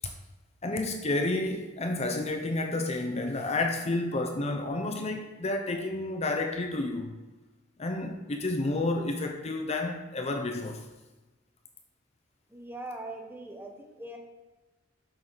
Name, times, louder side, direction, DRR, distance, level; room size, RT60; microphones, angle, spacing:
voice 1, 0.6-7.2 7.8-10.9, left 2 dB, 35° left, 0.7 m, -30 dB
voice 2, 12.5-14.2, right 1 dB, 10° right, 1.1 m, -41 dB
8.8 x 7.7 x 3.9 m
head